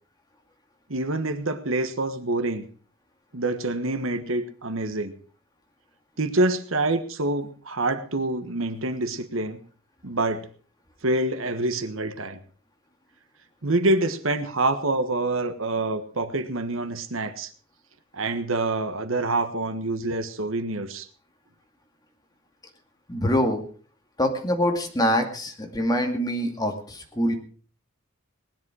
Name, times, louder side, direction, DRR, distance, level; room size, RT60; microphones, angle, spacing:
voice 1, 0.9-2.7 3.3-5.1 6.2-9.6 10.0-10.5 11.0-12.4 13.6-17.5 18.1-21.1, right 2 dB, 70° right, 10 dB, 1.4 m, -26 dB
voice 2, 23.1-23.6 24.2-27.3, equal, 20° left, 3 dB, 2.4 m, -24 dB
19.0 x 10.5 x 4.9 m, 0.42 s
head